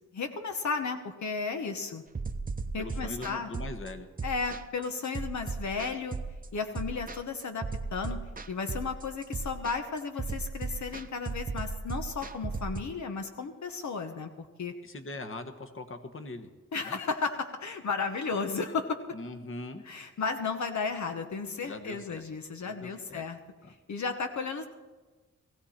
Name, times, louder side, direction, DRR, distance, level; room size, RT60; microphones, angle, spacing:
voice 1, 0.1-2.0 2.7-3.5 4.2-6.2 6.5-8.2 8.5-14.7 16.7-19.0 19.9-23.4 23.9-24.6, left 4 dB, 75° left, 6 dB, 1.2 m, -34 dB
sound 1, 2.1-12.8, right 4 dB, 30° right, 0.8 m, -36 dB
voice 2, 2.8-4.1 14.8-16.5 16.8-17.0 19.1-19.8 21.6-22.2 22.6-23.2 23.6-23.7, left 2 dB, 45° left, 7 dB, 1.4 m, -41 dB
19.0 x 15.5 x 4.4 m, 1.2 s
wide cardioid pair, 120°, 29 cm